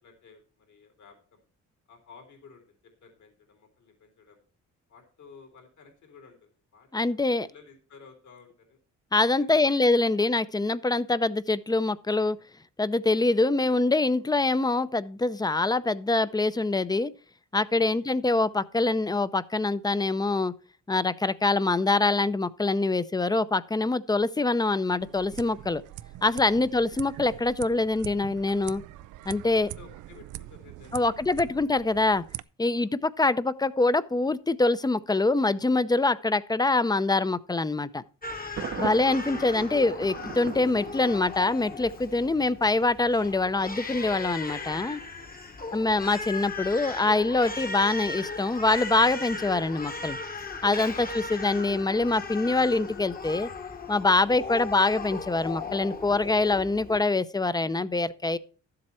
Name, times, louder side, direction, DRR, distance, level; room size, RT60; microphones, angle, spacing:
voice 1, 0.0-1.4 1.9-4.4 4.9-8.8 9.2-10.2 13.6-13.7 17.8-18.1 26.5-26.9 29.3-31.4 32.7-32.9 42.2-42.4 45.2-45.9 54.3-54.6, left 5 dB, 70° left, 3.9 m, -54 dB
voice 2, 6.9-7.5 9.1-12.4 12.8-17.1 17.5-20.5 20.9-25.8 26.2-28.8 29.3-29.7 30.9-32.2 32.6-38.0 38.8-45.0 45.7-50.2 50.6-53.5 53.9-58.4, left 3 dB, 15° left, 0.6 m, -24 dB
sound 1, 25.0-32.4, right 15 dB, 90° right, 0.5 m, -43 dB
Crying sobbing, 38.2-57.0, left 4 dB, 30° left, 1.2 m, -37 dB
Thunder, 38.6-41.6, right 7 dB, 45° right, 0.7 m, -38 dB
12.5 x 7.7 x 4.4 m
cardioid pair, 90°, 30 cm